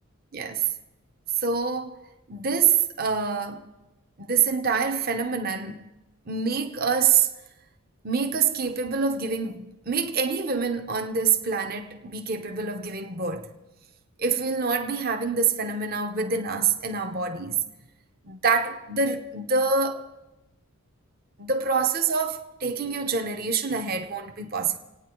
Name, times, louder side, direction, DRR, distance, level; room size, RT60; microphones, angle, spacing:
voice 1, 0.3-0.6 1.4-3.6 4.2-5.9 6.3-7.3 8.0-13.5 14.2-17.6 18.2-20.1 21.4-24.8, right 5 dB, 40° right, 1.0 m, -26 dB
26.5 x 9.5 x 4.6 m
head